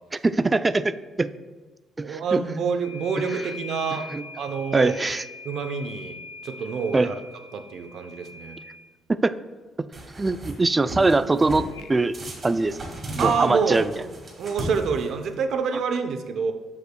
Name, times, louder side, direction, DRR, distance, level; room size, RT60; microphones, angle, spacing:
voice 1, 0.2-1.3 2.0-2.4 4.1-4.2 4.7-5.2 6.9-7.1 9.2-9.3 10.2-12.1 12.4-12.8 13.1-13.9, right 3 dB, 25° right, 13 dB, 0.3 m, -22 dB
voice 2, 2.0-4.1 4.4-4.9 5.4-7.2 7.5-8.6 13.2-14.1 14.4-16.5, right 5 dB, 70° right, 7 dB, 0.7 m, -27 dB
sound 1, 2.8-8.9 11.7-11.9, left 4 dB, 85° left, 0.6 m, -42 dB
sound 2, 9.9-10.5 10.9-11.7 12.1-15.3, right 1 dB, 40° right, 1.9 m, -35 dB
13.0 x 4.9 x 2.3 m, 1.3 s
cardioid pair, 90°, 0 cm